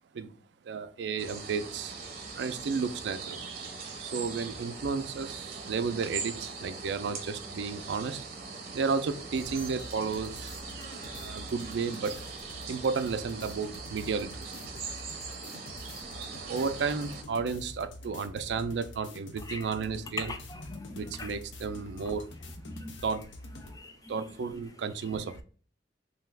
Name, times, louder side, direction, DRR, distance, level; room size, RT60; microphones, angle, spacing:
voice 1, 0.6-2.0 2.3-3.5 4.0-8.2 8.7-10.5 11.2-12.2 12.7-14.5 16.1-20.3 20.9-22.3 23.0-23.3 24.1-25.4, right 5 dB, 65° right, 0.3 m, -33 dB
sound 1, 1.2-17.2, right 4 dB, 50° right, 0.8 m, -41 dB
sound 2, 9.3-23.8, left 1 dB, 85° left, 0.5 m, -47 dB
voice 2, 20.2-21.3 22.7-22.9 23.7-24.2, left 3 dB, 20° left, 0.3 m, -40 dB
2.7 x 2.3 x 3.3 m
head